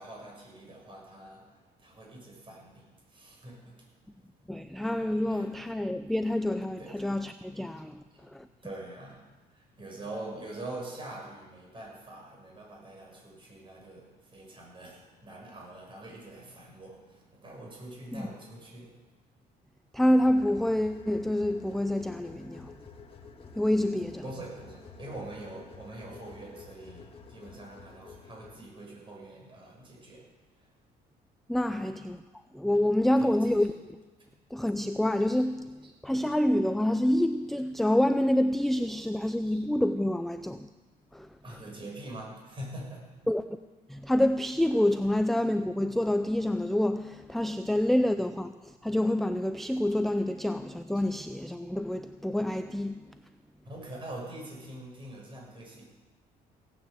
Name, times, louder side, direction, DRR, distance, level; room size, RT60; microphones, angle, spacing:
voice 1, 0.0-4.1 4.3-4.4 5.0-5.5 6.8-6.9 8.1-19.0 24.2-30.7 31.7-31.8 33.2-33.7 39.1-39.6 41.4-43.3 50.9-51.0 53.6-55.9, right 1 dB, 30° right, 6.5 m, -44 dB
voice 2, 4.5-8.0 8.3-8.5 18.1-18.3 19.9-22.7 23.6-24.2 31.5-32.2 32.5-33.7 34.5-40.7 41.1-41.3 43.3-43.5 43.9-53.0, left 1 dB, ahead, 0.5 m, -27 dB
sound 1, 20.1-28.6, left 4 dB, 35° left, 1.9 m, -50 dB
17.0 x 9.5 x 8.0 m
cardioid pair, 110°, 17 cm